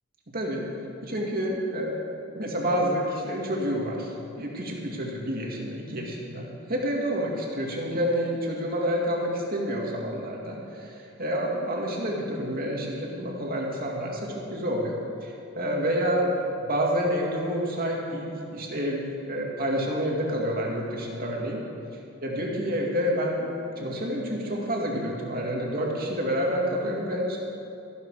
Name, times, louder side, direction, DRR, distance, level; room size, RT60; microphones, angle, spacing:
voice 1, 0.3-0.6 1.0-1.9 2.3-16.4 16.7-21.6 22.2-23.5 23.8-27.4, equal, 45° right, -1 dB, 2.3 m, -28 dB
14.0 x 12.0 x 4.9 m, 2.7 s
head